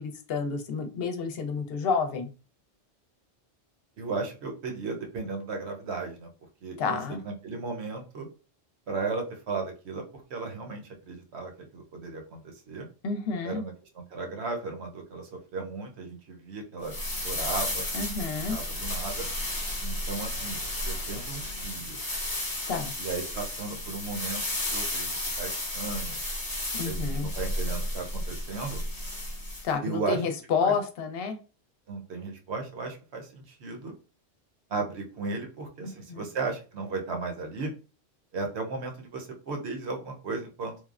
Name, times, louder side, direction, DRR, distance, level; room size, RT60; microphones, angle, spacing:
voice 1, 0.0-2.3 6.8-7.2 13.0-13.6 17.9-18.6 22.7-22.9 26.7-27.3 29.6-31.4 35.8-36.3, left 5 dB, 65° left, 7 dB, 0.7 m, -30 dB
voice 2, 4.0-6.3 6.6-7.0 7.2-8.3 8.9-12.9 13.4-17.0 17.2-17.8 18.4-19.3 19.8-22.0 23.0-24.4 24.7-26.2 26.8-28.9 29.8-30.2 30.6-30.7 31.9-33.9 34.7-37.7 38.3-40.9, right 4 dB, 70° right, 3 dB, 1.0 m, -35 dB
sound 1, 16.8-29.7, left 1 dB, 25° left, 0.6 m, -33 dB
3.2 x 2.0 x 2.3 m, 0.34 s
omnidirectional pair, 1.2 m